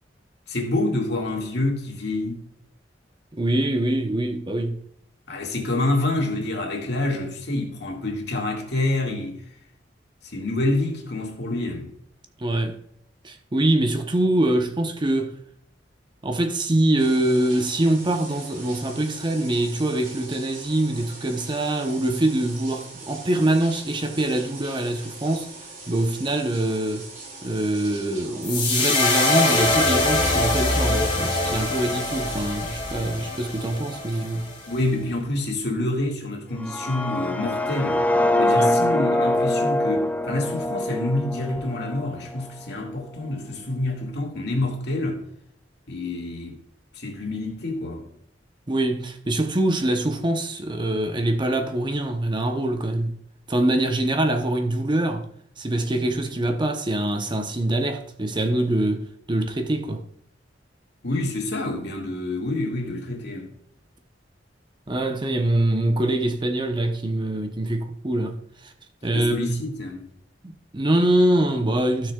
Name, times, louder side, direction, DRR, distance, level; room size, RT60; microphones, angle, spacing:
voice 1, 0.5-2.4 5.3-9.4 10.2-11.9 34.7-38.0 38.3-45.2 45.9-46.6 46.9-48.1 61.0-63.5 69.1-70.0, left 2 dB, 65° left, 2.1 m, -27 dB
voice 2, 3.4-4.8 12.4-12.8 13.2-15.4 16.2-25.5 25.9-27.1 27.4-34.5 38.5-38.8 48.7-53.1 53.5-55.3 55.6-60.0 64.9-68.4 68.6-68.7 69.0-69.6 70.4-72.1, right 1 dB, 25° right, 0.8 m, -24 dB
sound 1, 17.0-32.5, right 3 dB, 50° right, 2.7 m, -41 dB
sound 2, 28.4-34.8, left 2 dB, 30° left, 2.7 m, -23 dB
sound 3, 36.6-42.5, left 1 dB, 10° left, 0.4 m, -24 dB
15.5 x 6.5 x 2.4 m
head